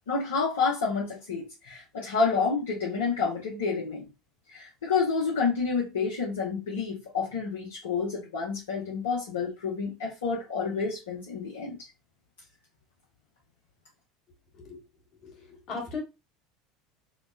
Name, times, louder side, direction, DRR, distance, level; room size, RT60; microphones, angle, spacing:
voice 1, 0.1-4.1 4.5-11.8, left 5 dB, 75° left, 0.7 m, -29 dB
voice 2, 15.2-16.0, left 4 dB, 45° left, 1.2 m, -37 dB
3.1 x 2.0 x 2.2 m
figure-of-eight pair, 75°, 0 cm